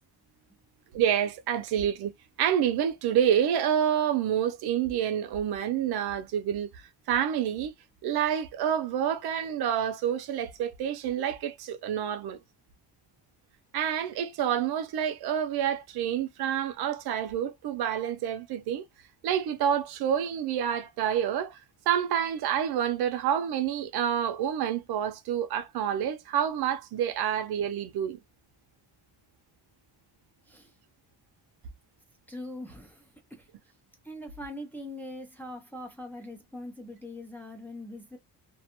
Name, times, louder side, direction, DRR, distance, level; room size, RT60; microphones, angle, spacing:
voice 1, 0.9-2.1 2.4-6.7 7.1-7.7 8.0-12.4 13.7-18.8 19.2-21.6 21.9-28.2, right 9 dB, 85° right, 0.7 m, -28 dB
voice 2, 32.3-33.5 34.0-38.2, left 1 dB, 5° left, 0.4 m, -42 dB
2.4 x 2.2 x 2.8 m
cardioid pair, 170°, 37 cm